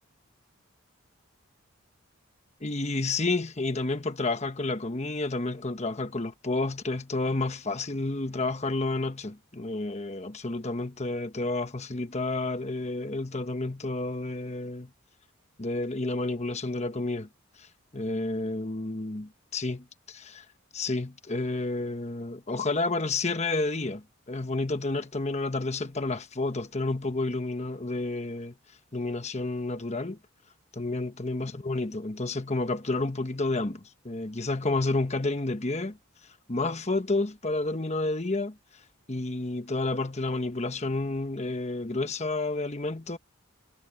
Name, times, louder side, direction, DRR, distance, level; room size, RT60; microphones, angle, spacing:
voice 1, 2.6-14.9 15.6-17.3 17.6-17.7 17.9-20.4 20.7-28.5 28.9-30.2 30.8-36.0 36.5-38.6 39.1-43.2, left 2 dB, 30° left, 1.2 m, -30 dB
head